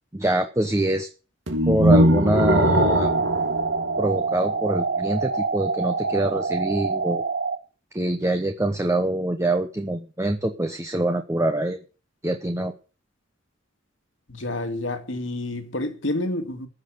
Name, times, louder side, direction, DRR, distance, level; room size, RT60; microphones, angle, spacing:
voice 1, 0.1-1.1 1.7-3.1 4.0-7.2 7.9-11.8 12.2-12.7, right 1 dB, 15° right, 0.9 m, -24 dB
sound 1, 1.5-4.6, equal, 80° right, 2.0 m, -20 dB
sound 2, 2.5-7.6, right 4 dB, 55° right, 1.3 m, -26 dB
voice 2, 14.3-16.7, left 2 dB, 75° left, 2.2 m, -29 dB
15.0 x 6.5 x 8.0 m
head